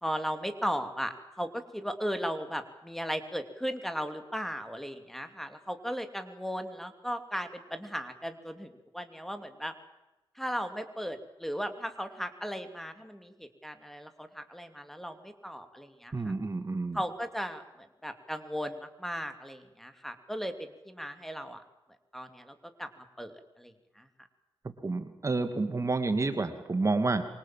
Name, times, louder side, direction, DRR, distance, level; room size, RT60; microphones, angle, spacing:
voice 1, 0.0-9.7 10.4-16.3 16.9-21.6 22.1-22.9 23.2-24.0, equal, 5° left, 8 dB, 2.9 m, -36 dB
voice 2, 16.1-17.0 24.8-27.2, right 3 dB, 35° right, 8 dB, 2.5 m, -29 dB
27.5 x 24.5 x 7.6 m, 1.0 s
cardioid pair, 85°, 9 cm